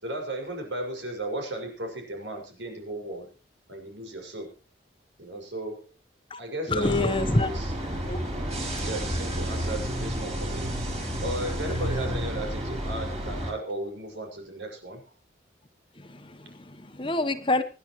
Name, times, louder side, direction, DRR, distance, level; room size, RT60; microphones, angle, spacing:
voice 1, 0.0-3.3 3.7-4.5 5.2-5.9 6.4-7.7 8.8-10.7 11.2-15.0, right 1 dB, 85° right, 3 dB, 5.9 m, -35 dB
voice 2, 6.7-7.5 8.1-8.2 8.5-8.9 16.0-17.6, left 2 dB, 25° left, 9 dB, 1.1 m, -27 dB
sound 1, 6.8-13.5, equal, 35° right, 5.2 m, -31 dB
26.0 x 10.5 x 3.1 m, 0.32 s
head